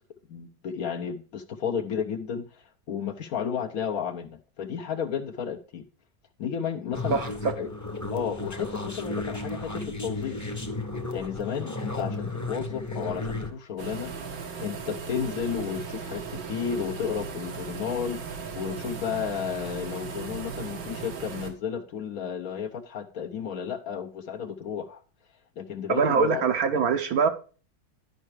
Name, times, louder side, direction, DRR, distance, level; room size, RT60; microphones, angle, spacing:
voice 1, 0.3-5.9 6.4-7.2 7.6-7.7 8.1-10.4 11.1-14.1 14.6-18.2 18.6-25.0 25.6-26.4, left 7 dB, 60° left, 1.1 m, -32 dB
sound 1, 6.9-13.5, left 2 dB, 15° left, 0.8 m, -34 dB
sound 2, 13.8-21.5, right 5 dB, 90° right, 2.1 m, -37 dB
voice 2, 25.9-27.3, right 6 dB, 60° right, 1.1 m, -23 dB
11.0 x 5.5 x 4.6 m
omnidirectional pair, 1.9 m